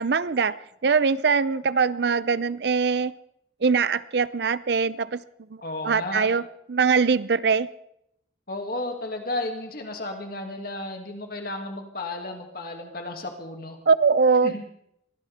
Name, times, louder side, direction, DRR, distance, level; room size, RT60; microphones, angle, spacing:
voice 1, 0.0-3.1 3.6-5.2 5.8-6.4 6.7-7.7 13.9-14.5, right 5 dB, 60° right, 17 dB, 0.5 m, -22 dB
voice 2, 5.6-6.3 8.5-13.8 14.4-14.6, left 2 dB, 50° left, 3 dB, 2.5 m, -33 dB
23.0 x 16.0 x 3.6 m, 0.78 s
head